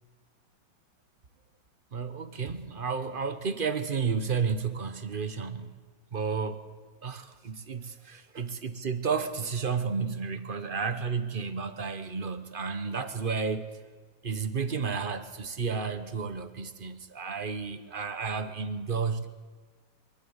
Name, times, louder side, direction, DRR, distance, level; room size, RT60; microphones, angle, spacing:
voice 1, 1.9-5.8 6.1-6.6 7.0-13.7 14.2-19.3, right 5 dB, 40° right, 11 dB, 0.8 m, -32 dB
24.0 x 13.5 x 8.1 m, 1.5 s
omnidirectional pair, 2.3 m